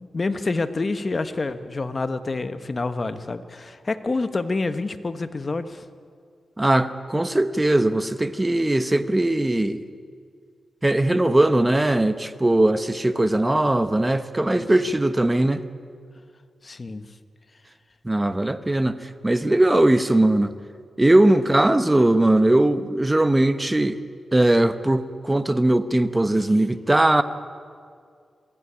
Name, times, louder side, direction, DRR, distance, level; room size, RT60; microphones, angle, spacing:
voice 1, 0.0-5.8 14.5-14.7 16.6-17.0, left 3 dB, 35° left, 11 dB, 1.1 m, -28 dB
voice 2, 6.6-9.8 10.8-15.6 18.0-19.0 19.2-20.5 21.0-24.0 24.3-27.2, right 1 dB, 15° right, 12 dB, 1.0 m, -20 dB
21.5 x 16.0 x 10.0 m, 2.2 s
wide cardioid pair, 95°, 0 cm